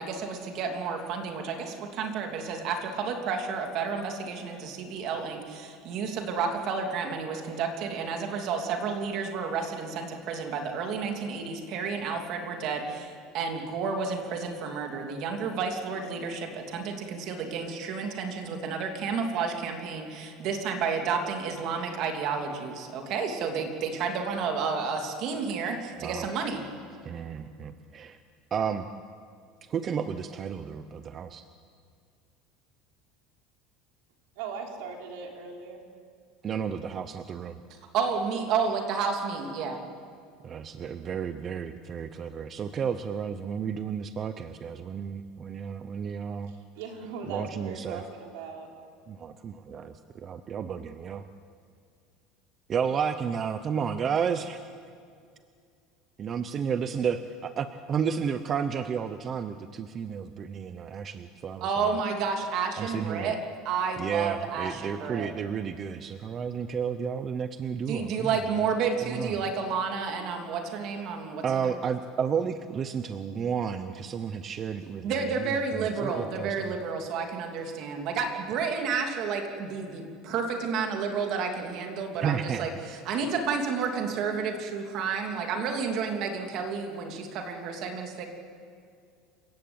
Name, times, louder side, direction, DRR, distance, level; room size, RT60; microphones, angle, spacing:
voice 1, 0.0-26.6 37.9-39.8 61.6-63.4 63.6-65.3 67.9-71.7 75.0-88.3, right 5 dB, 45° right, 4 dB, 2.9 m, -31 dB
voice 2, 27.0-28.2 28.5-28.9 29.7-31.4 36.4-37.6 40.4-46.5 47.3-48.0 49.1-51.2 52.7-54.6 56.2-62.0 62.8-63.3 64.0-68.4 69.0-69.3 71.4-75.3 75.7-76.7 82.2-82.8, right 7 dB, 25° right, 10 dB, 0.7 m, -32 dB
voice 3, 34.4-35.8 38.3-38.4 46.5-48.7, right 5 dB, 75° right, 2 dB, 4.3 m, -39 dB
28.0 x 16.0 x 8.8 m, 2.3 s
cardioid pair, 160°, 0 cm